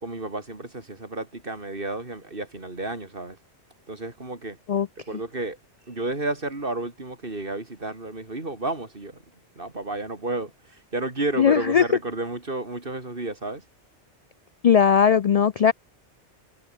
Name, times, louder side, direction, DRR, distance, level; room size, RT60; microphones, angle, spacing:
voice 1, 0.0-3.4 3.9-4.6 5.1-5.6 5.9-9.2 9.6-13.6, right 2 dB, 50° right, 3.5 m, -31 dB
voice 2, 11.4-11.8 14.6-15.7, left 7 dB, 70° left, 0.3 m, -18 dB
omnidirectional pair, 1.2 m